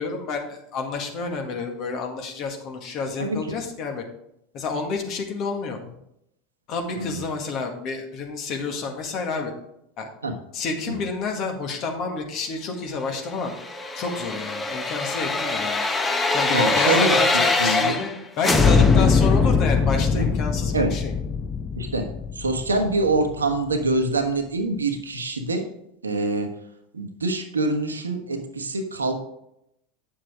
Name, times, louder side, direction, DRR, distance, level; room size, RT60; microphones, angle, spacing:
voice 1, 0.0-4.0 4.5-5.8 6.7-9.5 10.0-10.1 10.5-13.5 14.0-18.1 18.4-21.1, left 4 dB, 45° left, 3 dB, 1.8 m, -29 dB
voice 2, 3.2-3.6 6.9-7.3 10.2-10.4 10.8-11.0 16.5-18.0 20.1-20.3 20.7-21.0 21.7-22.1 22.3-25.7 26.0-26.5 26.9-29.2, right 2 dB, 85° right, 6 dB, 1.2 m, -25 dB
sound 1, 13.4-18.2 18.4-23.3 23.7-23.8, left 4 dB, 20° left, 1.0 m, -22 dB
9.1 x 7.2 x 3.6 m, 0.79 s
figure-of-eight pair, 80°, 0 cm